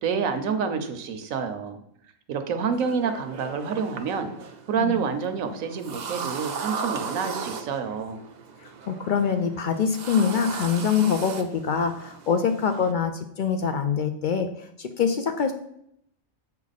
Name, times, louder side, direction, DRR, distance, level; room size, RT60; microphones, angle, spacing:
voice 1, 0.0-1.8 2.3-4.3 4.7-8.2, right 6 dB, 85° right, 8 dB, 1.2 m, -28 dB
sound 1, 2.7-12.9, right 6 dB, 55° right, 0.5 m, -37 dB
voice 2, 8.6-15.5, left 6 dB, 70° left, 7 dB, 0.4 m, -25 dB
7.1 x 4.5 x 4.1 m, 0.74 s
omnidirectional pair, 1.4 m